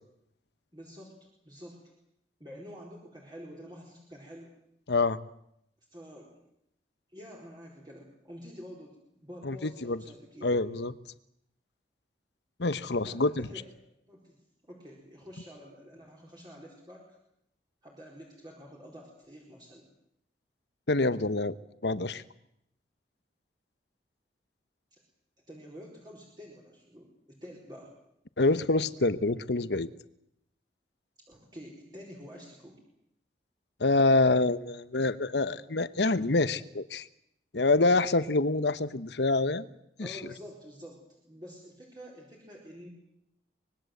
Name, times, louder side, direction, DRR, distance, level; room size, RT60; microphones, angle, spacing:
voice 1, 0.7-1.8 2.4-4.5 5.9-6.4 7.1-10.5 13.0-13.7 14.1-14.4 14.6-17.2 17.8-19.9 24.9-25.0 25.5-27.9 31.3-32.7 40.0-42.9, equal, 25° right, -3 dB, 4.6 m, -48 dB
voice 2, 4.9-5.2 9.4-9.6 9.8-10.0 10.4-10.9 12.6-13.5 20.9-21.5 21.8-22.2 28.4-29.9 33.8-37.1 37.5-39.6 40.0-40.1, left 2 dB, 80° left, 14 dB, 1.0 m, -26 dB
25.0 x 21.0 x 8.0 m, 0.76 s
head